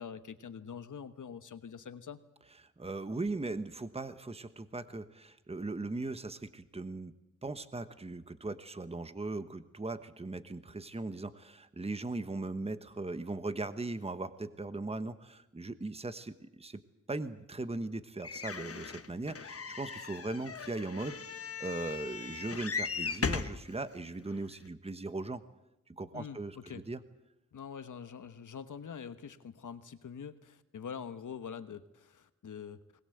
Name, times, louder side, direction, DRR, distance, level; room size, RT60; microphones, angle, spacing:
voice 1, 0.0-2.2 26.1-26.8 27.5-32.8, left 7 dB, 80° left, 11 dB, 1.2 m, -45 dB
voice 2, 2.8-7.1 7.4-16.8 17.1-25.4 25.9-27.0, right 2 dB, 20° right, 11 dB, 1.2 m, -39 dB
sound 1, 18.2-23.6 24.3-24.4 24.7-24.8, left 5 dB, 50° left, 1.3 m, -38 dB
21.0 x 20.0 x 7.9 m, 0.92 s
wide cardioid pair, 75°, 30 cm